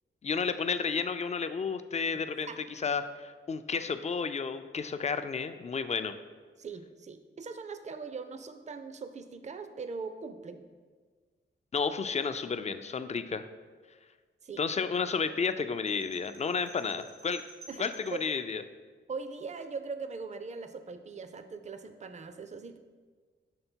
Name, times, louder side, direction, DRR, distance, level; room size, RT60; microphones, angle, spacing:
voice 1, 0.2-6.1 11.7-13.4 14.6-17.4 17.8-18.6, left 5 dB, 35° left, 10 dB, 0.4 m, -32 dB
voice 2, 6.6-10.6 14.4-14.6 17.7-18.2 19.1-22.8, right 4 dB, 35° right, 9 dB, 0.4 m, -41 dB
sound 1, 15.9-18.3, right 2 dB, 90° right, 1.4 m, -52 dB
6.7 x 3.5 x 4.4 m, 1.5 s
cardioid pair, 65°, 21 cm